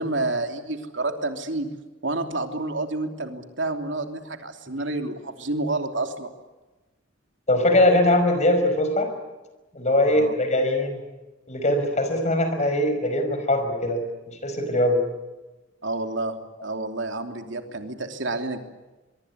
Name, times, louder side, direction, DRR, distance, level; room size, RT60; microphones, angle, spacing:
voice 1, 0.0-1.7 2.0-6.3 10.1-10.3 15.8-16.3 16.6-18.6, right 2 dB, 70° right, 5 dB, 3.0 m, -29 dB
voice 2, 7.5-9.1 9.7-11.0 11.5-14.0 14.3-15.0, left 1 dB, 40° left, 8 dB, 5.4 m, -21 dB
24.0 x 23.5 x 9.8 m, 1.1 s
head